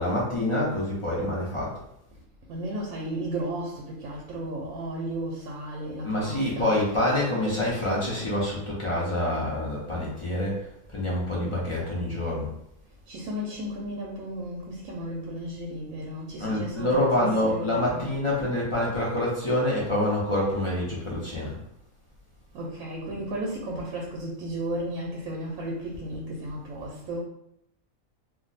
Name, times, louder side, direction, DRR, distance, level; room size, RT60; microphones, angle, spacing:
voice 1, 0.0-1.8 6.0-10.6 10.9-12.5 16.4-21.6, left 1 dB, 40° left, -5 dB, 0.4 m, -26 dB
voice 2, 2.5-7.0 13.1-18.1 22.5-27.2, right 1 dB, 75° right, -2 dB, 0.9 m, -34 dB
2.5 x 2.1 x 3.9 m, 0.79 s
omnidirectional pair, 1.5 m